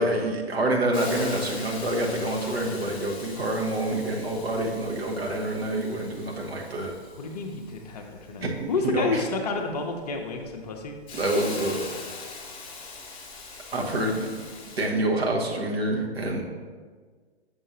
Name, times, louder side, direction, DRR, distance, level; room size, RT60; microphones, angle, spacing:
voice 1, 0.0-6.9 8.4-8.7 8.9-9.2 11.1-11.9 13.7-14.3 14.8-16.4, right 1 dB, 65° right, 0 dB, 1.3 m, -27 dB
Hiss, 0.9-14.9, left 4 dB, 15° left, 0.9 m, -42 dB
voice 2, 7.2-11.0, left 3 dB, 35° left, 3 dB, 0.6 m, -30 dB
6.7 x 5.4 x 2.7 m, 1.5 s
figure-of-eight pair, 120°, 33 cm